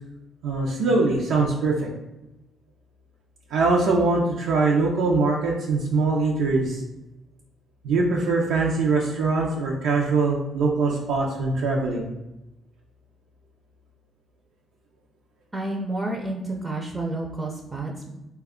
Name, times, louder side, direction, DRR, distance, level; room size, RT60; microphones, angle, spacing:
voice 1, 0.4-1.9 3.5-6.8 7.8-12.1, right 3 dB, 90° right, -3 dB, 0.4 m, -22 dB
voice 2, 15.5-18.1, right 2 dB, 25° right, 0 dB, 0.4 m, -30 dB
3.3 x 2.2 x 3.6 m, 0.97 s
cardioid pair, 90°, 0 cm